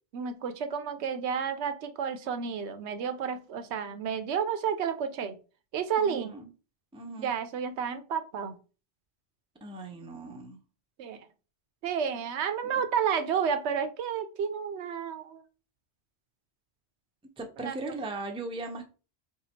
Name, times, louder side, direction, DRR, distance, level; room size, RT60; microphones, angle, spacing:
voice 1, 0.1-5.4 5.7-6.3 7.2-8.6 11.0-11.3 11.8-15.4 17.6-17.8, right 7 dB, 85° right, 10 dB, 0.9 m, -31 dB
voice 2, 6.0-6.5 6.9-7.4 9.6-10.6 12.6-12.8 17.4-18.9, right 2 dB, 10° right, 4 dB, 0.4 m, -38 dB
3.3 x 2.8 x 4.2 m, 0.34 s
omnidirectional pair, 1.1 m